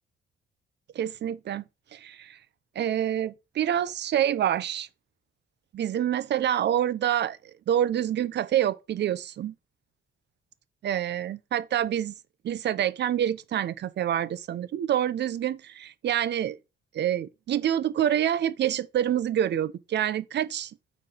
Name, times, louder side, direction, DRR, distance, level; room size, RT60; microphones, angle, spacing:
voice 1, 0.9-1.6 1.9-2.4 2.8-4.9 5.7-7.4 7.7-9.5 10.8-12.1 12.4-16.6 16.9-20.7, right 10 dB, 60° right, 0.8 m, -27 dB
6.8 x 4.5 x 5.0 m
cardioid pair, 90°, 20 cm